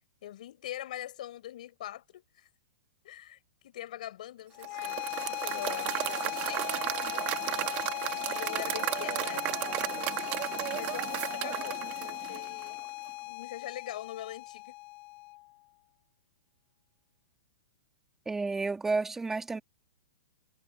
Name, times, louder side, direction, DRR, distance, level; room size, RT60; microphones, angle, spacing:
voice 1, 0.2-2.5 3.0-5.0 5.3-6.7 8.0-10.1 10.7-12.9 13.3-14.7, left 13 dB, 65° left, 7.9 m, -43 dB
sound 1, 4.5-15.5, left 25 dB, 40° left, 3.1 m, -38 dB
Applause / Crowd, 4.6-12.8, right 18 dB, 35° right, 1.7 m, -34 dB
sound 2, 6.4-12.2, right 10 dB, 75° right, 4.5 m, -49 dB
voice 2, 18.3-19.6, right 3 dB, 10° right, 2.5 m, -31 dB
hypercardioid pair, 140°, 5 cm